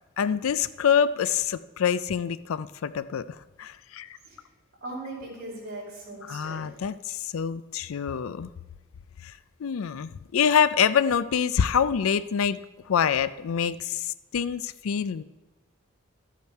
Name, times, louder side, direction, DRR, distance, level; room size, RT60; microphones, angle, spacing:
voice 1, 0.2-4.2 6.3-8.5 9.2-12.6 12.9-15.2, left 7 dB, 75° left, 15 dB, 0.4 m, -26 dB
voice 2, 4.8-6.7, right 2 dB, 50° right, -4 dB, 4.8 m, -39 dB
13.0 x 8.5 x 4.6 m, 1.1 s
head